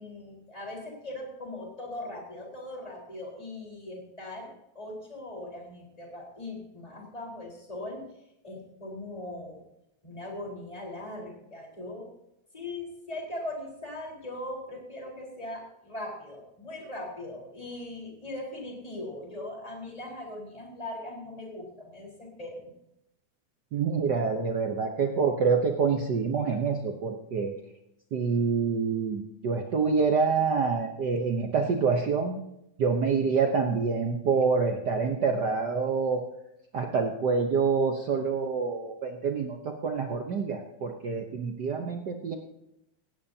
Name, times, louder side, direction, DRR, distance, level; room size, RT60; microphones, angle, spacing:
voice 1, 0.0-8.0 8.4-9.6 10.0-12.1 12.5-22.7, left 1 dB, 10° left, -2 dB, 4.1 m, -40 dB
voice 2, 23.7-27.5 28.1-32.4 32.8-36.2 36.7-42.3, right 5 dB, 80° right, 3 dB, 0.9 m, -27 dB
17.5 x 17.0 x 2.8 m, 0.83 s
omnidirectional pair, 3.4 m